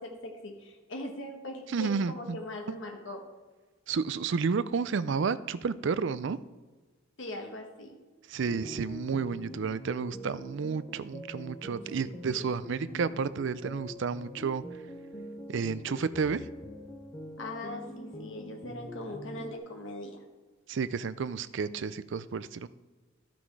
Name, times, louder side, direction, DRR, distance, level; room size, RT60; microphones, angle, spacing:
voice 1, 0.0-3.2 7.2-7.9 12.3-12.5 17.4-20.2, left 1 dB, 65° left, 2 dB, 1.4 m, -40 dB
voice 2, 1.7-2.4 3.9-6.4 8.3-14.6 15.5-16.4 20.7-22.7, right 5 dB, 65° right, 15 dB, 0.4 m, -31 dB
sound 1, 8.4-19.6, equal, 20° left, 1.0 m, -44 dB
12.0 x 6.0 x 4.8 m, 1.3 s
head